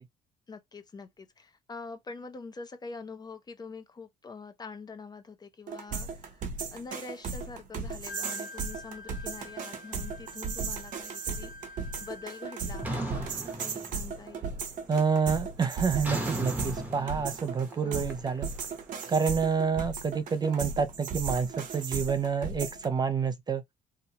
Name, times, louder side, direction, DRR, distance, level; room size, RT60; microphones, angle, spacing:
voice 1, 0.5-11.5 12.0-13.3 13.6-14.6 17.8-18.1, left 4 dB, 25° left, 0.5 m, -45 dB
sound 1, 5.7-22.9, right 5 dB, 50° right, 0.8 m, -36 dB
Wind instrument woodwind instrument, 8.1-13.5, left 2 dB, 90° left, 1.1 m, -48 dB
sound 2, 12.8-14.4 14.7-15.1 16.0-19.1, right 1 dB, 10° right, 0.8 m, -36 dB
voice 2, 14.9-18.5 19.1-23.6, right 5 dB, 25° right, 0.4 m, -28 dB
2.8 x 2.2 x 2.8 m
cardioid pair, 110°, 17 cm